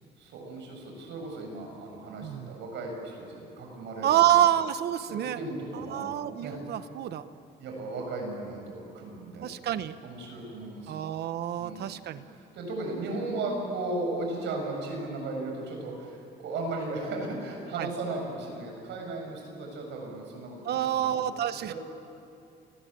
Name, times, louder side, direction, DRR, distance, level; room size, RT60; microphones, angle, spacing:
voice 1, 0.2-4.2 5.1-6.6 7.6-9.5 10.0-11.0 11.6-11.9 12.3-21.3 21.7-21.8, right 2 dB, 85° right, 1 dB, 7.6 m, -36 dB
voice 2, 2.2-2.6 4.0-5.4 5.7-7.2 9.4-9.9 10.9-12.3 17.8-17.9 20.6-21.7, right 11 dB, 65° right, 12 dB, 1.1 m, -27 dB
29.5 x 21.0 x 9.1 m, 2.6 s
cardioid pair, 160°, 18 cm